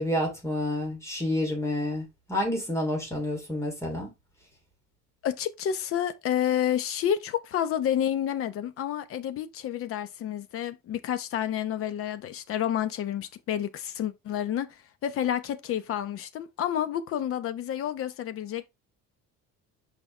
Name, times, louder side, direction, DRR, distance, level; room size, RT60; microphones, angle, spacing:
voice 1, 0.0-4.1, left 1 dB, 10° left, 2.8 m, -29 dB
voice 2, 5.2-18.7, left 10 dB, 45° left, 0.8 m, -29 dB
6.3 x 5.4 x 3.2 m
cardioid pair, 175°, 31 cm